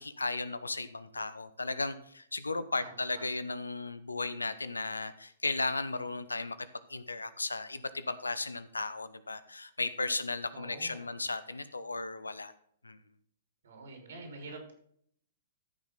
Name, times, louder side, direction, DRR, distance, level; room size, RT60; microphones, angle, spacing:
voice 1, 0.0-12.5 12.8-13.0, left 3 dB, 85° left, 15 dB, 0.8 m, -35 dB
voice 2, 2.8-3.2 10.5-11.0 13.6-14.7, right 2 dB, 65° right, 2 dB, 4.1 m, -46 dB
14.5 x 6.3 x 3.8 m, 0.65 s
figure-of-eight pair, 115°, 0 cm